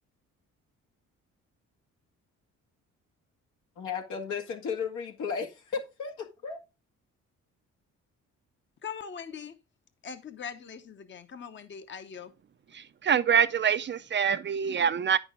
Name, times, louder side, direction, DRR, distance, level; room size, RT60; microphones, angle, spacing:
voice 1, 3.8-6.6, left 6 dB, 80° left, 2.1 m, -34 dB
voice 2, 8.8-9.6 10.0-12.3, left 7 dB, 40° left, 0.9 m, -41 dB
voice 3, 12.7-15.2, right 7 dB, 40° right, 0.5 m, -25 dB
9.2 x 6.2 x 3.7 m
cardioid pair, 90°, 30 cm